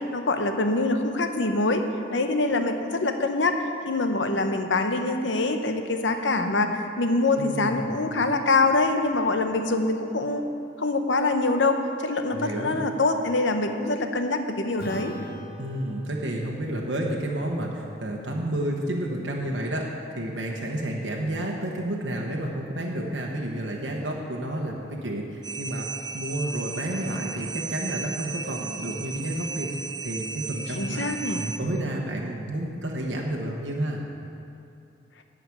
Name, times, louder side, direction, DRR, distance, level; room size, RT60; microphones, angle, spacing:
voice 1, 0.0-1.8 2.1-3.5 3.8-10.4 10.8-15.2 30.7-31.5, left 2 dB, 85° left, 6 dB, 0.8 m, -24 dB
voice 2, 7.3-8.0 12.3-12.8 15.6-25.9 26.1-31.0 31.4-34.0, right 1 dB, 85° right, -1 dB, 1.1 m, -30 dB
Acoustic guitar / Strum, 14.8-19.6, equal, 55° left, 1.7 m, -43 dB
sound 1, 25.4-31.6, right 5 dB, 20° right, 0.3 m, -35 dB
11.0 x 5.1 x 8.4 m, 2.8 s
head